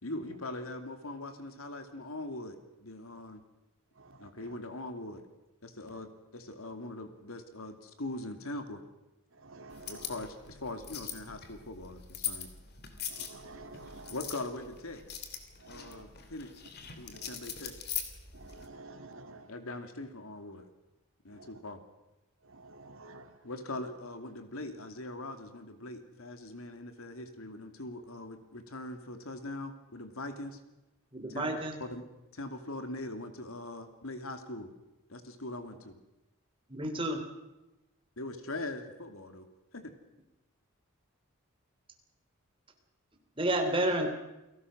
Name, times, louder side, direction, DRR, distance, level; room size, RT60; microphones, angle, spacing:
voice 1, 0.0-2.6 2.8-3.4 4.2-5.2 5.6-8.8 9.9-12.5 14.1-15.0 15.6-16.5 17.0-17.7 19.5-20.6 21.2-21.8 23.4-30.6 31.3-31.5 31.8-32.0 32.4-34.7 35.1-35.9 38.2-39.4 39.7-39.9, left 2 dB, 80° left, 7 dB, 2.8 m, -41 dB
voice 2, 9.5-10.1 13.2-14.2 15.9-16.0 17.2-17.4 18.4-19.5 22.6-23.2, right 3 dB, 70° right, 7 dB, 2.4 m, -49 dB
sound 1, 9.7-18.7, left 8 dB, 50° left, 3.1 m, -42 dB
voice 3, 31.1-31.8 36.7-37.2 43.4-44.1, right 1 dB, 25° right, 4 dB, 3.3 m, -30 dB
29.0 x 18.0 x 6.4 m, 1.0 s
head